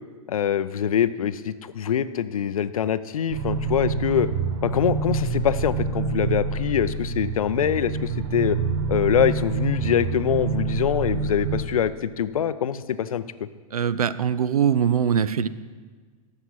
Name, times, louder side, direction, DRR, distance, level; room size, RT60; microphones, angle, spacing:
voice 1, 0.3-4.3 4.6-8.6 8.9-13.5, left 9 dB, 70° left, 15 dB, 0.5 m, -24 dB
sound 1, 3.3-11.6, right 4 dB, 50° right, 0.9 m, -27 dB
voice 2, 13.7-15.5, right 8 dB, 80° right, 16 dB, 0.4 m, -22 dB
11.0 x 7.2 x 4.1 m, 1.5 s
figure-of-eight pair, 105°, 19 cm